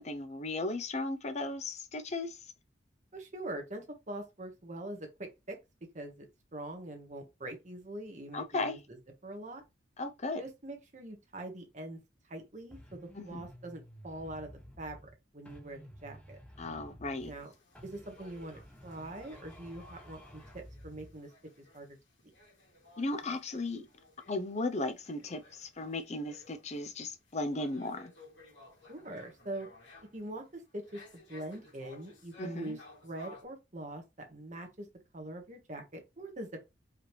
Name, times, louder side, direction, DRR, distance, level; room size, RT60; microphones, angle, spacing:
voice 1, 0.0-2.4 8.3-8.8 10.0-10.4 13.2-13.4 16.6-17.3 23.0-23.8 24.3-28.1 32.4-32.8, left 2 dB, 35° left, 0.6 m, -36 dB
voice 2, 3.1-5.6 5.9-6.2 6.5-9.0 9.2-9.6 10.4-12.0 12.3-16.4 17.2-17.5 17.8-21.3 21.7-22.0 28.9-29.7 30.1-34.9 35.1-36.6, right 1 dB, 40° right, 1.3 m, -43 dB
sound 1, 12.7-15.2 15.4-17.5 17.7-21.2, equal, 5° left, 0.9 m, -52 dB
sound 2, 17.2-33.4, left 2 dB, 80° left, 2.4 m, -57 dB
4.9 x 3.2 x 3.1 m
head